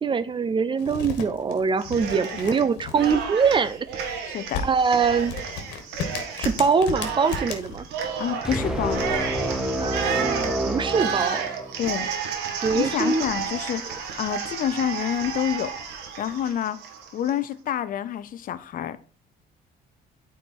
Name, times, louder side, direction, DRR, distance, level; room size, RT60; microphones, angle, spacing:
voice 1, 0.0-3.9 4.6-5.3 6.4-7.9 9.8-11.4 12.6-13.2, right 5 dB, 30° right, 0.6 m, -23 dB
sound 1, 0.8-9.1, left 6 dB, 90° left, 1.6 m, -36 dB
Cheering, 1.8-2.6 2.9-17.3, right 6 dB, 90° right, 1.6 m, -32 dB
voice 2, 4.2-4.7 8.2-9.0 11.8-12.1 12.7-15.7 16.2-16.8 17.1-19.0, left 10 dB, 55° left, 0.6 m, -28 dB
sound 2, 8.4-11.9, right 1 dB, 5° right, 1.6 m, -28 dB
9.0 x 4.7 x 4.5 m
cardioid pair, 110°, 17 cm